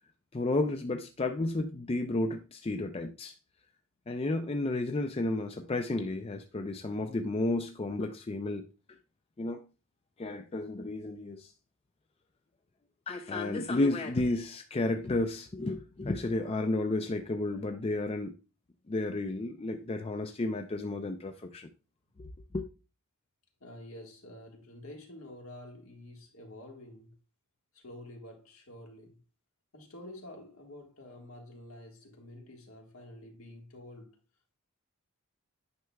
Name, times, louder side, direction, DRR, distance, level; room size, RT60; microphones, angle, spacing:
voice 1, 0.3-3.3 4.1-8.7 9.4-9.6 10.2-11.5 13.1-18.3 18.9-21.7 22.2-22.3 22.5-22.6, left 2 dB, 25° left, 0.4 m, -32 dB
voice 2, 23.6-27.2 27.7-29.2 29.7-34.2, left 1 dB, 75° left, 1.7 m, -49 dB
9.4 x 5.8 x 2.3 m
head